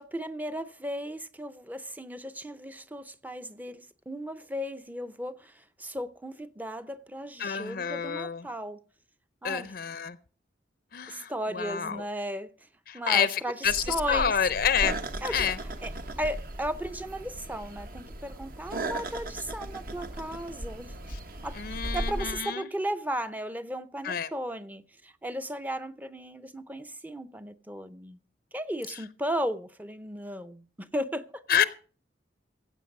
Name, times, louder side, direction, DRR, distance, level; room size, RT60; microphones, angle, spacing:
voice 1, 0.0-8.8 9.4-9.7 11.1-12.5 12.9-14.3 15.2-15.9 16.2-20.9 21.4-28.2 28.5-31.4, equal, 10° right, 0.6 m, -35 dB
voice 2, 7.4-8.4 9.4-10.2 10.9-12.0 12.9-15.0 15.3-15.6 21.1-21.2 21.6-22.7 24.0-24.3 31.5-31.6, left 8 dB, 55° left, 0.5 m, -28 dB
sound 1, 13.6-22.4, right 1 dB, 50° right, 1.1 m, -37 dB
15.5 x 7.9 x 5.3 m
head